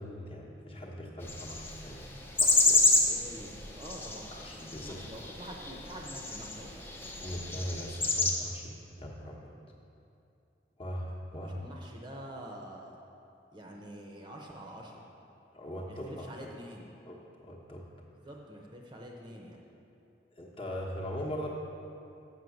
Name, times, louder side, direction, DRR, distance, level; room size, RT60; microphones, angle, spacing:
voice 1, 0.0-2.1 2.4-3.0 4.3-5.3 7.2-9.5 10.8-11.6 15.5-16.5 17.1-17.8 20.3-21.5, equal, 30° left, -2 dB, 1.0 m, -40 dB
sound 1, 1.2-8.3, left 3 dB, 10° left, 0.6 m, -29 dB
voice 2, 3.1-4.3 4.8-6.8 11.4-12.9 13.5-15.1 15.9-16.9 18.2-19.6, equal, 25° right, -1 dB, 0.7 m, -46 dB
7.9 x 5.7 x 7.1 m, 2.7 s
head